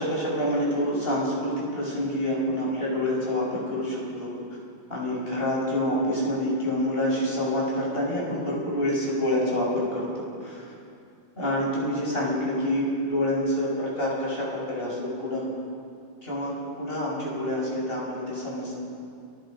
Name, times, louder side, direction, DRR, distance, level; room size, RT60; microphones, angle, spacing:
voice 1, 0.0-4.3 4.9-10.6 11.4-15.4 16.2-18.7, left 1 dB, 30° left, -4 dB, 7.1 m, -27 dB
29.5 x 20.0 x 5.4 m, 2.5 s
omnidirectional pair, 2.1 m